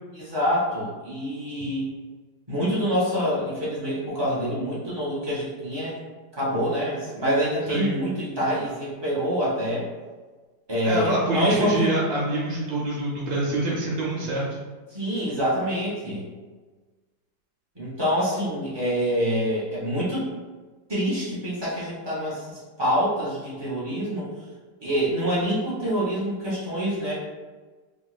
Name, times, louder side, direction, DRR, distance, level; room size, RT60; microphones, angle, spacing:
voice 1, 0.1-1.9 2.5-5.9 6.4-9.9 10.7-11.9 14.9-16.3 17.8-20.3 20.9-24.3 24.8-27.1, equal, 40° right, -8 dB, 0.3 m, -26 dB
voice 2, 10.8-14.6, right 2 dB, 80° right, -4 dB, 1.4 m, -26 dB
3.4 x 2.9 x 2.4 m, 1.3 s
omnidirectional pair, 2.1 m